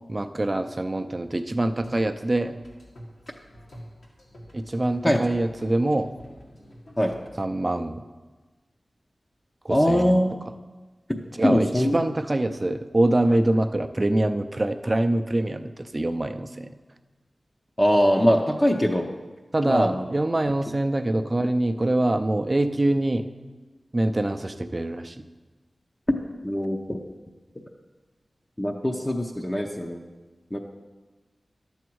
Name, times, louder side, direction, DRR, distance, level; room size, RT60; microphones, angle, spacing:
voice 1, 0.1-2.6 4.5-6.1 7.4-8.0 9.6-10.1 11.4-11.7 11.9-16.8 19.5-23.3 23.9-25.3, right 1 dB, 30° right, 8 dB, 0.5 m, -24 dB
sound 1, 1.6-7.2, equal, 80° left, 1.9 m, -45 dB
voice 2, 9.7-10.3 11.1-12.0 17.8-19.1 19.6-20.1 26.4-27.0 27.5-27.6 28.6-30.0 30.5-30.6, equal, 15° left, 0 dB, 0.7 m, -22 dB
11.0 x 7.2 x 4.7 m, 1.3 s
wide cardioid pair, 85°, 0 cm